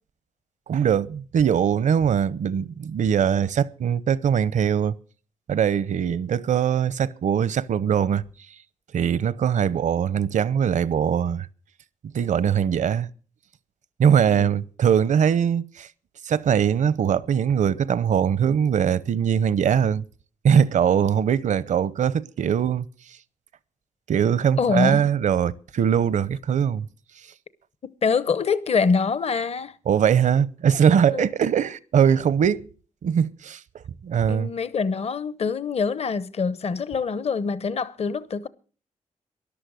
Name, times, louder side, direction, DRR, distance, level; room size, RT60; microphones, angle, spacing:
voice 1, 0.7-4.9 5.5-8.2 8.9-11.5 12.1-13.1 14.0-15.9 16.2-20.0 20.4-22.9 24.1-26.9 29.9-32.7 33.0-33.6 34.0-34.5, right 8 dB, 75° right, 0.7 m, -21 dB
voice 2, 24.6-25.1 27.8-29.8 31.1-31.3 34.2-38.5, left 5 dB, 55° left, 0.9 m, -25 dB
13.5 x 11.5 x 6.3 m
cardioid pair, 65°, 13 cm